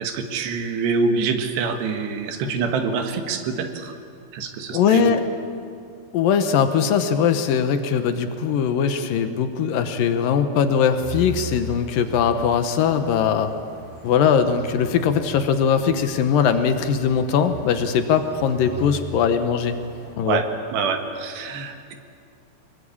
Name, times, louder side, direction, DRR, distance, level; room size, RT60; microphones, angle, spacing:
voice 1, 0.0-4.0 4.3-5.1 20.3-21.9, right 5 dB, 85° right, 6 dB, 3.8 m, -25 dB
voice 2, 4.7-5.2 6.1-13.5 14.0-19.8 20.2-20.4, left 7 dB, 70° left, 9 dB, 2.4 m, -20 dB
sound 1, 11.0-20.1, equal, 20° left, 3.5 m, -40 dB
24.5 x 21.0 x 8.6 m, 2.4 s
omnidirectional pair, 4.8 m